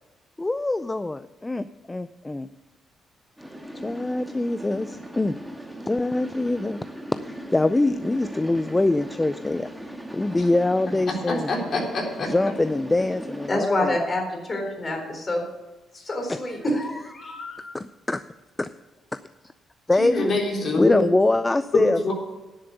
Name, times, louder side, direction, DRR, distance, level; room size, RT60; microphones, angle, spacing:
voice 1, 0.4-2.5 3.7-5.4 5.9-6.9 7.2-11.5 12.3-14.0 16.3-16.4 17.7-18.2 18.6-18.7 19.9-20.3 20.8-22.0, left 2 dB, 15° left, 12 dB, 0.4 m, -24 dB
sound 1, 3.4-13.5, equal, 5° right, 1.8 m, -38 dB
voice 2, 11.3-12.3 20.0-21.1 21.7-22.1, left 2 dB, 50° left, 0 dB, 3.7 m, -25 dB
voice 3, 13.5-15.4 15.9-17.7, left 1 dB, 30° left, 2 dB, 3.9 m, -27 dB
10.5 x 7.6 x 8.0 m, 1.1 s
cardioid pair, 90°, 0 cm